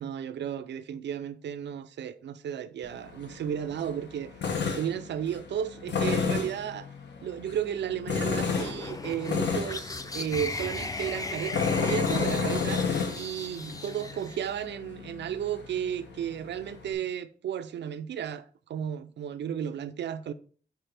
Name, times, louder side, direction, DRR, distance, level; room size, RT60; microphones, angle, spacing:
voice 1, 0.0-4.3 4.7-6.9 7.2-12.9 13.1-20.3, right 9 dB, 85° right, 0.4 m, -34 dB
Tools, 2.8-16.9, left 5 dB, 85° left, 0.9 m, -32 dB
sound 1, 8.5-14.6, left 3 dB, 20° left, 0.5 m, -37 dB
5.8 x 4.9 x 3.3 m
wide cardioid pair, 125°, 18 cm